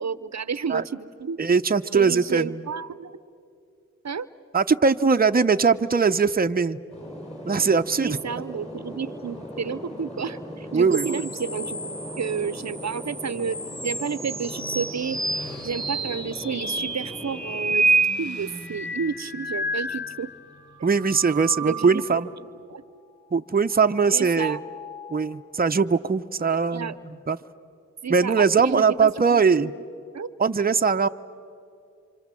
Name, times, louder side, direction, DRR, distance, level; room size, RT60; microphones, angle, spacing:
voice 1, 0.0-1.4 1.9-3.2 4.0-4.3 8.0-11.8 12.2-13.6 13.8-15.2 15.6-20.3 21.6-22.2 22.7-22.8 24.1-24.6 26.7-26.9 28.0-29.7 30.1-30.3, right 6 dB, 65° right, 16 dB, 0.7 m, -31 dB
voice 2, 1.4-2.6 4.5-6.8 7.4-8.2 10.7-11.2 20.8-22.3 23.3-24.6 25.1-27.4 28.1-29.7 30.4-31.1, right 5 dB, 30° right, 8 dB, 0.7 m, -21 dB
sound 1, 6.9-17.8, equal, 20° left, 7.3 m, -39 dB
sound 2, 10.9-20.5 20.9-22.3 24.1-25.3, right 2 dB, ahead, 2.2 m, -30 dB
Motorcycle, 12.5-22.2, equal, 75° left, 4.1 m, -48 dB
28.0 x 26.5 x 7.6 m, 2.5 s
wide cardioid pair, 55°, 29 cm